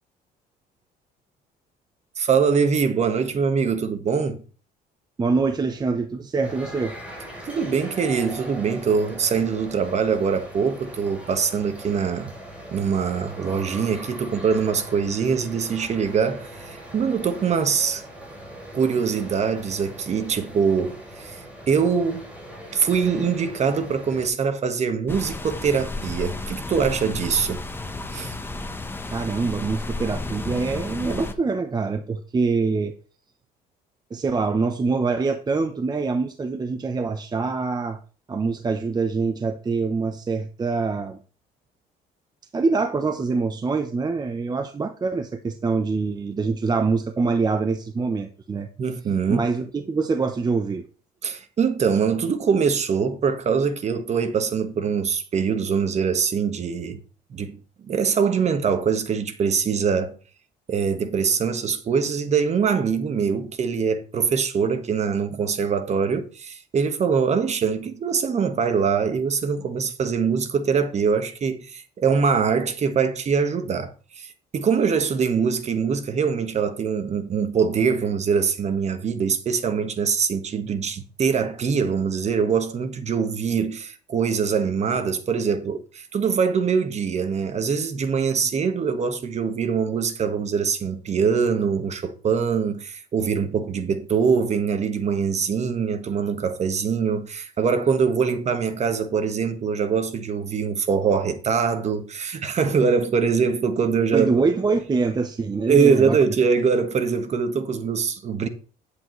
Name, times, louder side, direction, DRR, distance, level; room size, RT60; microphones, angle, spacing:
voice 1, 2.2-4.4 7.4-12.3 12.7-18.0 18.7-22.3 22.7-27.6 28.1-28.3 48.8-49.5 51.2-57.0 57.3-60.2 60.7-104.3 105.7-108.5, right 6 dB, 40° right, 1.4 m, -23 dB
voice 2, 5.2-7.0 29.1-32.9 34.1-38.0 38.3-41.2 42.5-48.7 49.3-50.9 104.1-106.2, right 4 dB, 25° right, 0.8 m, -24 dB
sound 1, 6.4-24.3, right 1 dB, 10° right, 5.4 m, -40 dB
sound 2, 25.1-31.3, left 2 dB, 15° left, 1.0 m, -32 dB
10.0 x 8.3 x 3.2 m
cardioid pair, 110°, 17 cm